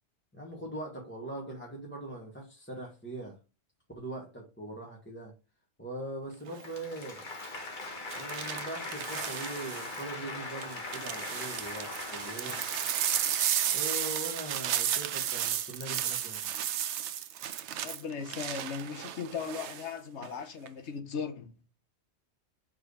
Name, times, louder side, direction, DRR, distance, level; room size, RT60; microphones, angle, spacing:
voice 1, 0.3-3.4 3.9-5.3 5.8-7.3 8.1-12.6 13.7-16.5, right 1 dB, 10° left, 1.3 m, -41 dB
sound 1, 6.5-6.8 8.1-10.0 10.6-19.8 20.2-20.7, right 10 dB, 85° right, 0.9 m, -33 dB
Applause, 6.6-14.0, left 3 dB, 45° left, 1.4 m, -41 dB
voice 2, 17.8-21.5, left 6 dB, 85° left, 1.2 m, -38 dB
5.0 x 4.7 x 4.8 m
omnidirectional pair, 1.1 m